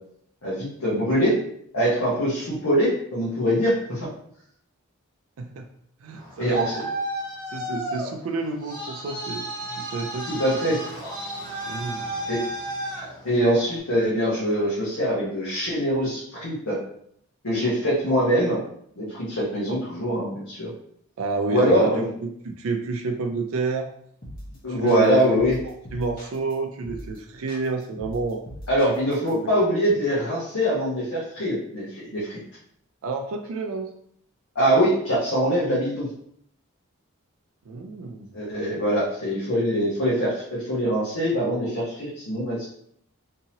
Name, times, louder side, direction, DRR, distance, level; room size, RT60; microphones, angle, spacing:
voice 1, 0.4-1.4 1.7-4.1 6.4-6.8 10.3-10.8 12.3-12.4 13.2-16.8 17.4-18.6 19.0-20.7 21.5-22.1 24.6-25.6 28.7-32.4 34.5-36.1 38.3-42.6, equal, 85° left, -8 dB, 1.1 m, -23 dB
voice 2, 5.4-5.7 6.0-6.6 7.5-10.3 11.7-12.0 21.2-22.0 22.4-23.9 24.7-25.3 25.9-28.4 33.0-33.9 37.7-38.3, right 3 dB, 75° right, 4 dB, 0.4 m, -29 dB
Traffic noise roadway noise, 6.1-13.8, right 1 dB, 15° left, 1.3 m, -33 dB
sound 1, 24.2-24.6 24.9-26.5 26.8-27.2 27.5-29.3, equal, 40° left, 0.9 m, -40 dB
3.7 x 2.8 x 2.8 m, 0.68 s
head